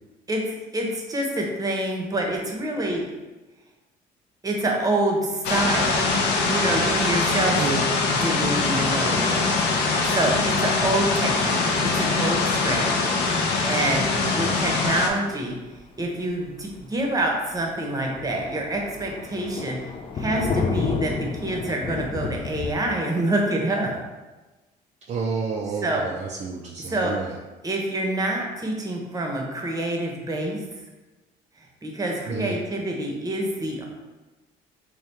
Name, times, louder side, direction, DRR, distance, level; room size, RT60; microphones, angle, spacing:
voice 1, 0.7-3.0 4.4-6.0 6.4-7.6 8.1-15.5 16.0-19.8 20.1-24.0 25.8-26.1 26.9-27.3 27.6-30.6 31.6-33.8, right 1 dB, 20° right, 0 dB, 0.8 m, -27 dB
sound 1, 5.4-15.1, left 3 dB, 90° left, 0.6 m, -23 dB
Thunder, 15.8-15.9 16.3-16.4 16.8-16.9 17.2-17.3 17.5-22.7, left 4 dB, 30° left, 0.3 m, -30 dB
voice 2, 25.1-27.3 32.3-32.6, right 5 dB, 45° right, -1 dB, 0.4 m, -30 dB
3.4 x 2.3 x 4.2 m, 1.2 s
cardioid pair, 110°, 17 cm